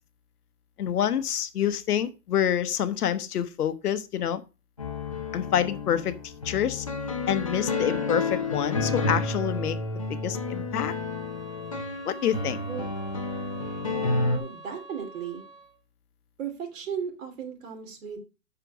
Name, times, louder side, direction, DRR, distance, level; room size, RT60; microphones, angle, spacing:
voice 1, 0.8-4.4 5.3-6.9 7.3-9.8 10.1-10.9 12.0-12.6, left 9 dB, 70° left, 1.0 m, -27 dB
sound 1, 4.8-14.4, left 3 dB, 25° left, 0.5 m, -30 dB
sound 2, 11.0-15.8, right 3 dB, 5° right, 1.3 m, -46 dB
voice 2, 12.6-12.9 13.8-15.4 16.4-18.2, right 7 dB, 55° right, 2.9 m, -36 dB
6.6 x 6.0 x 6.0 m
hypercardioid pair, 170°, 47 cm